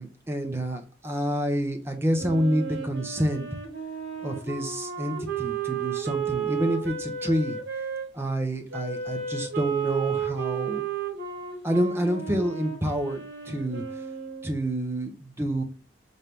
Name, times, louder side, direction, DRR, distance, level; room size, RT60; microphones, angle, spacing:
voice 1, 0.0-3.5 4.2-7.6 8.1-10.8 11.6-13.8 14.4-15.6, equal, 15° right, 4 dB, 0.5 m, -28 dB
Wind instrument woodwind instrument, 2.1-8.1 8.7-14.6, right 7 dB, 65° right, 1.2 m, -33 dB
4.3 x 2.7 x 3.4 m, 0.33 s
head